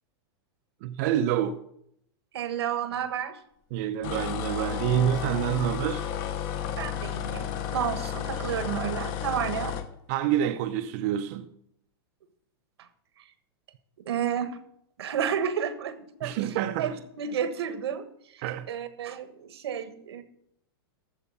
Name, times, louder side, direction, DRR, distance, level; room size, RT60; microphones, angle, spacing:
voice 1, 0.8-1.6 3.7-6.1 10.1-11.4 16.2-16.9 18.4-18.7, right 10 dB, 40° right, 0.5 m, -27 dB
voice 2, 2.3-3.4 6.8-9.8 12.8-12.9 13.2-13.3 14.0-14.6 15.0-20.2, right 8 dB, 85° right, 1.3 m, -31 dB
sound 1, 4.0-9.9, left 9 dB, 30° left, 0.8 m, -32 dB
13.5 x 4.7 x 7.1 m
supercardioid pair, 165°, 13 cm